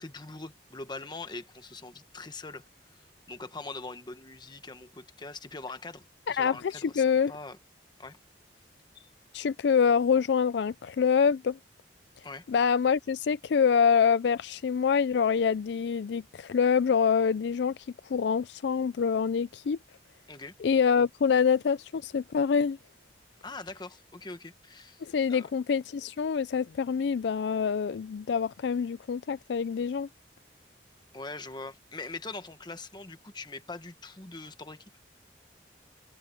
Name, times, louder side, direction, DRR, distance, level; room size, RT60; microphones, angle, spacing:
voice 1, 0.0-2.6 3.3-7.6 8.0-8.2 8.9-9.1 12.2-12.5 20.3-20.5 23.4-25.0 25.3-25.5 31.1-34.8, left 3 dB, 25° left, 1.3 m, -42 dB
voice 2, 6.3-7.3 9.3-11.6 12.5-17.8 18.1-19.8 20.6-22.8 25.0-30.1, left 6 dB, 70° left, 0.4 m, -26 dB
head